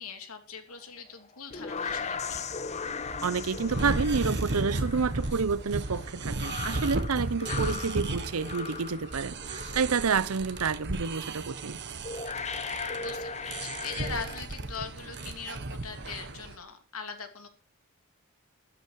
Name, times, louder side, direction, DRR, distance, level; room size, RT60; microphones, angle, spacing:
voice 1, 0.0-2.4 7.5-7.9 12.9-17.5, left 5 dB, 80° left, 2.9 m, -41 dB
sound 1, 1.2-10.1 10.4-10.8 11.6-11.7 12.0-14.4, left 5 dB, 30° left, 0.8 m, -38 dB
sound 2, 1.9-16.6, right 2 dB, 55° right, 1.3 m, -35 dB
voice 2, 3.2-11.8, right 5 dB, 80° right, 0.7 m, -29 dB
13.0 x 12.5 x 4.7 m
head